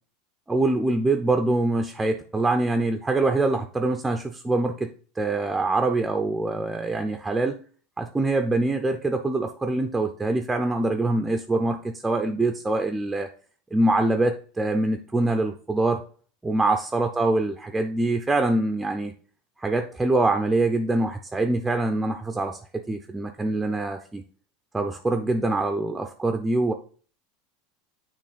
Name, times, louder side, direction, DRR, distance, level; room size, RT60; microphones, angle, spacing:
voice 1, 0.5-4.9 5.2-7.6 8.0-13.3 13.7-16.0 16.4-19.1 19.6-24.2 24.7-26.7, right 2 dB, 10° right, 6 dB, 0.4 m, -24 dB
6.7 x 3.0 x 5.0 m, 0.43 s
supercardioid pair, 130°, 0 cm